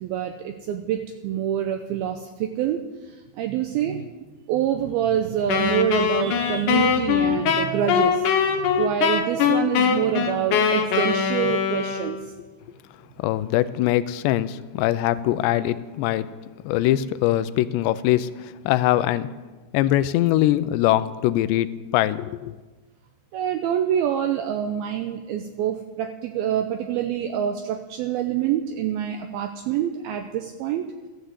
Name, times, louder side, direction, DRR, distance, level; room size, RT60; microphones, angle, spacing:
voice 1, 0.0-2.8 3.4-4.0 4.5-12.2 23.3-30.9, right 10 dB, 80° right, 5 dB, 2.3 m, -26 dB
Wind instrument woodwind instrument, 5.5-12.3, left 7 dB, 65° left, 2.1 m, -22 dB
voice 2, 13.2-16.3 16.7-18.3 18.7-19.3 19.7-22.6, left 14 dB, 90° left, 13 dB, 2.8 m, -22 dB
14.5 x 10.0 x 8.1 m, 1.2 s
omnidirectional pair, 4.9 m